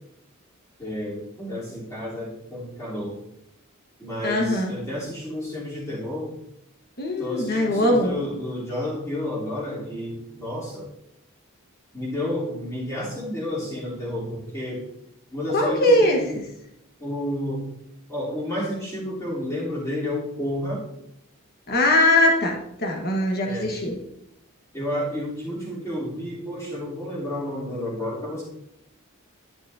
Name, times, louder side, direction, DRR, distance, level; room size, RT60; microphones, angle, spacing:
voice 1, 0.8-3.2 4.0-6.3 7.2-10.9 11.9-14.9 15.3-16.4 17.0-17.7 18.1-20.9 23.4-23.8 24.7-28.4, left 1 dB, 15° left, -8 dB, 3.3 m, -31 dB
voice 2, 4.2-4.7 7.0-8.1 15.5-16.2 21.7-24.0, left 1 dB, 45° left, 1 dB, 1.3 m, -21 dB
12.0 x 6.1 x 2.7 m, 0.79 s
head